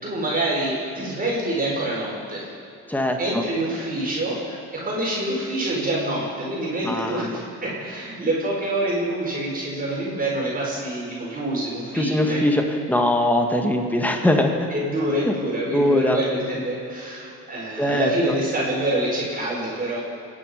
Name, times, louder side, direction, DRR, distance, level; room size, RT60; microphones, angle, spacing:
voice 1, 0.0-2.5 3.2-12.4 14.7-20.0, right 1 dB, 30° right, -5 dB, 5.0 m, -26 dB
voice 2, 2.9-3.4 6.8-7.4 11.9-12.6 12.9-14.7 15.2-15.3 15.7-16.2 17.8-18.1, left 1 dB, 5° left, 3 dB, 1.7 m, -21 dB
27.0 x 9.9 x 5.2 m, 2.7 s
cardioid pair, 90°, 30 cm